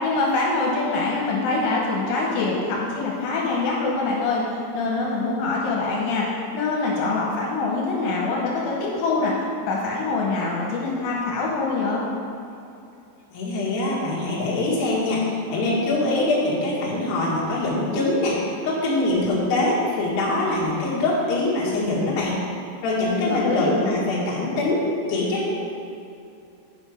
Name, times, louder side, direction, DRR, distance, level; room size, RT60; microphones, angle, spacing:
voice 1, 0.0-4.4 4.7-6.3 6.5-9.3 9.7-12.1 23.3-23.7, left 3 dB, 85° left, -3 dB, 3.5 m, -24 dB
voice 2, 13.3-18.4 18.6-22.4 22.8-24.8 25.1-25.5, left 2 dB, 65° left, -6 dB, 3.6 m, -23 dB
9.8 x 5.9 x 5.0 m, 2.6 s
omnidirectional pair, 5.4 m